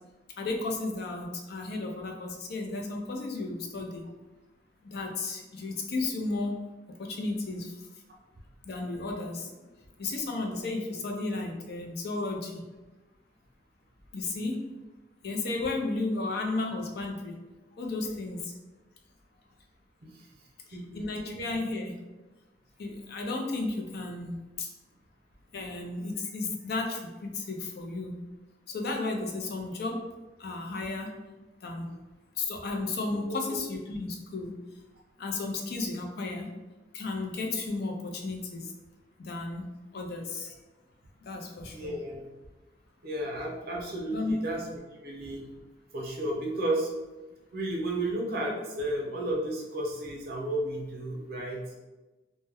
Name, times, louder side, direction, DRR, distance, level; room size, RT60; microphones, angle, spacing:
voice 1, 0.4-4.0 4.8-6.6 7.0-7.7 8.7-9.5 10.0-12.6 14.1-14.6 15.2-17.3 17.8-18.5 20.7-21.9 22.8-24.7 25.5-28.1 28.7-30.0 30.4-31.1 31.6-31.9 32.4-34.6 35.2-36.5 36.9-38.7 39.2-39.6 39.9-40.6 41.3-41.9 44.1-44.4, left 3 dB, 60° left, 2 dB, 0.4 m, -33 dB
voice 2, 33.1-33.6 41.7-42.2 43.0-44.6 45.0-45.4 45.9-46.9 47.5-51.6, right 1 dB, 60° right, -2 dB, 0.7 m, -33 dB
2.1 x 2.1 x 3.4 m, 1.1 s
head